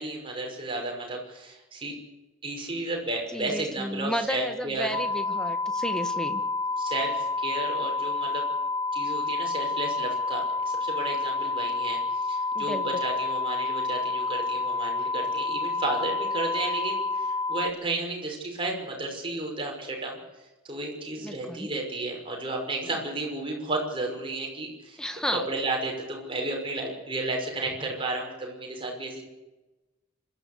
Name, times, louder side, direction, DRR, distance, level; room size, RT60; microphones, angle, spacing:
voice 1, 0.0-1.9 2.4-4.9 6.8-8.5 8.9-20.2 20.6-25.0 25.3-29.2, right 2 dB, 25° right, 0 dB, 5.9 m, -33 dB
voice 2, 3.3-6.4 12.5-12.8 21.2-21.7 25.0-25.4, equal, 5° left, 7 dB, 1.6 m, -32 dB
sound 1, 4.9-17.7, left 3 dB, 20° left, 0.8 m, -29 dB
26.5 x 14.0 x 8.4 m, 1.1 s
head